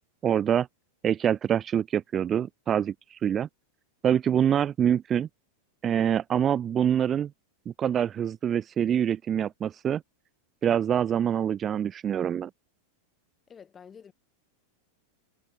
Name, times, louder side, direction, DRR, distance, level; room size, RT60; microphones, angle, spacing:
voice 1, 0.2-0.7 1.0-3.5 4.0-5.3 5.8-7.3 7.8-10.0 10.6-12.5, right 9 dB, 25° right, 0.3 m, -25 dB
voice 2, 13.5-14.1, left 7 dB, 20° left, 4.6 m, -49 dB
figure-of-eight pair, 90°, 0 cm